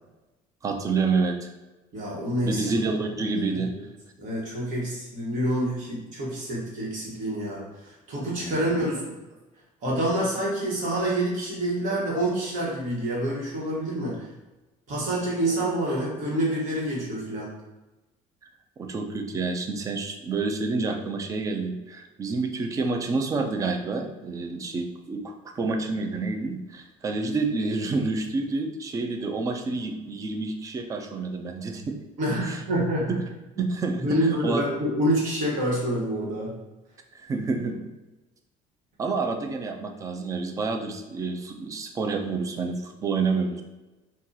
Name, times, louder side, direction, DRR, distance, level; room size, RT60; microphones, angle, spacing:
voice 1, 0.6-1.5 2.4-3.7 8.4-8.6 18.8-32.0 32.5-32.6 33.1-33.2 33.6-34.6 37.1-37.8 39.0-43.6, right 3 dB, 25° right, 4 dB, 0.3 m, -28 dB
voice 2, 1.9-2.6 3.5-3.8 4.2-9.1 9.8-14.3 14.9-17.5 32.2-33.2 33.6-33.7 34.0-36.6, right 1 dB, 60° right, -4 dB, 1.2 m, -27 dB
2.7 x 2.3 x 3.8 m, 1.1 s
cardioid pair, 160°, 15 cm